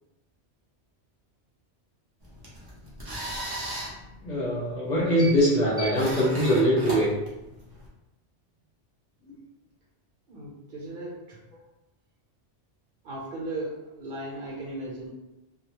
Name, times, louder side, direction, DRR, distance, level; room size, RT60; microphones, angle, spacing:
sound 1, 2.2-7.9, right 1 dB, 30° right, 0.4 m, -37 dB
voice 1, 4.2-7.1, equal, 45° left, -6 dB, 0.7 m, -22 dB
voice 2, 10.3-11.4 13.0-15.1, right 2 dB, 50° right, -5 dB, 0.9 m, -36 dB
2.2 x 2.0 x 2.9 m, 0.97 s
omnidirectional pair, 1.2 m